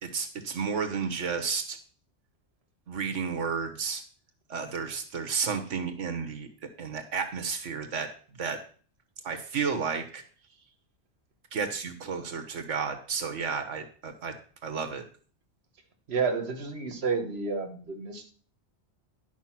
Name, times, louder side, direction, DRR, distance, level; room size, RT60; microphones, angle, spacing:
voice 1, 0.0-1.8 2.9-4.0 4.5-6.5 6.8-8.1 8.4-8.6 9.2-10.2 11.5-14.4 14.6-15.0, right 5 dB, 90° right, 6 dB, 1.5 m, -32 dB
voice 2, 16.1-18.3, right 4 dB, 60° right, 5 dB, 1.6 m, -30 dB
11.0 x 5.7 x 5.9 m, 0.42 s
omnidirectional pair, 1.2 m